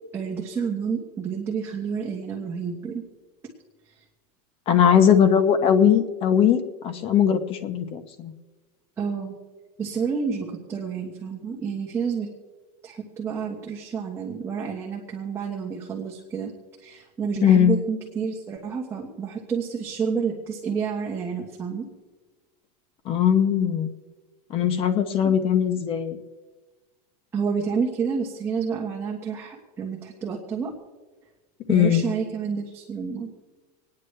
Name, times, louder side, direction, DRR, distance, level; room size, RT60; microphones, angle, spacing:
voice 1, 0.1-3.0 9.0-9.3 9.8-12.3 12.8-16.5 16.8-21.9 25.2-25.3 27.3-30.7 31.7-33.3, right 6 dB, 10° right, -3 dB, 1.3 m, -29 dB
voice 2, 4.7-8.3 17.4-17.7 23.1-23.9 24.5-26.2 31.7-32.0, left 8 dB, 30° left, 10 dB, 0.9 m, -20 dB
27.5 x 9.6 x 3.3 m, 1.3 s
supercardioid pair, 165°, 20 cm